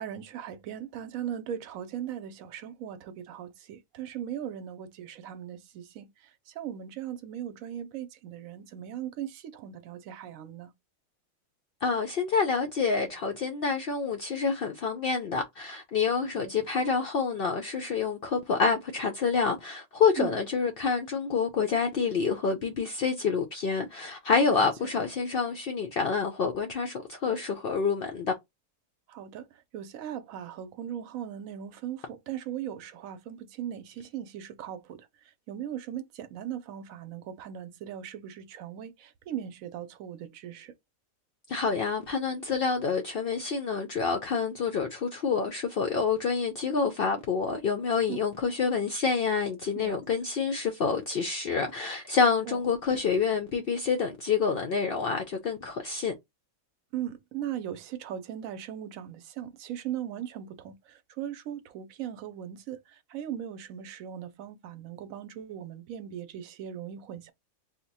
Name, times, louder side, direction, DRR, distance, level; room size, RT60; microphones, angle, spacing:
voice 1, 0.0-10.7 16.4-16.5 20.2-20.4 24.5-24.7 29.1-35.1 35.5-40.7 48.1-48.2 49.8-50.0 52.5-52.6 56.9-67.3, right 10 dB, 75° right, 1.0 m, -38 dB
voice 2, 11.8-28.3 41.5-56.1, left 5 dB, 65° left, 0.5 m, -27 dB
2.7 x 2.1 x 4.0 m
omnidirectional pair, 1.5 m